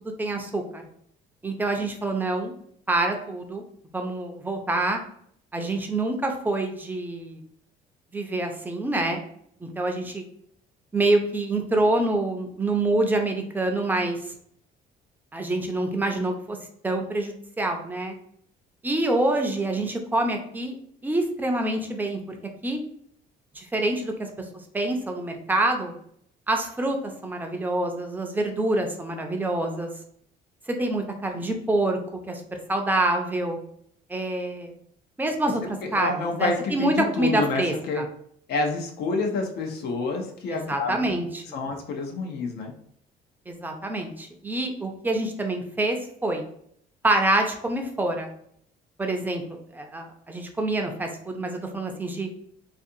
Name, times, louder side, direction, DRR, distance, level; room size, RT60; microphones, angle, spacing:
voice 1, 0.2-0.8 1.4-2.5 2.9-3.6 3.9-5.0 5.5-7.4 8.1-9.2 9.6-10.2 10.9-14.2 15.3-16.6 16.8-18.2 18.8-20.7 21.0-22.4 22.6-22.8 23.5-24.3 24.7-25.9 26.5-27.0 27.2-29.9 30.7-33.6 34.1-34.7 35.2-38.1 40.5-41.4 43.5-46.4 47.0-48.3 49.0-52.3, right 2 dB, 10° right, 3 dB, 0.4 m, -26 dB
voice 2, 35.8-38.0 38.5-41.2 41.5-42.7, left 3 dB, 70° left, 3 dB, 0.6 m, -28 dB
2.5 x 2.5 x 2.7 m, 0.67 s
cardioid pair, 110°, 17 cm